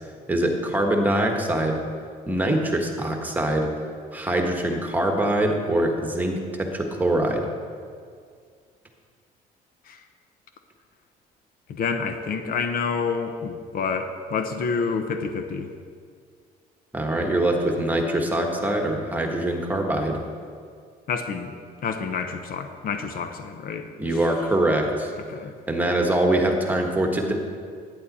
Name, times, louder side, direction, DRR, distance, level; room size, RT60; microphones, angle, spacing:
voice 1, 0.3-1.8 2.3-3.7 4.1-7.5 16.9-20.2 24.0-25.1 25.7-27.3, right 1 dB, 10° right, 2 dB, 1.4 m, -23 dB
voice 2, 11.7-15.7 21.1-21.5 21.8-23.9 25.3-25.5, left 5 dB, 60° left, 7 dB, 0.8 m, -28 dB
11.0 x 9.3 x 4.2 m, 2.1 s
cardioid pair, 110°, 17 cm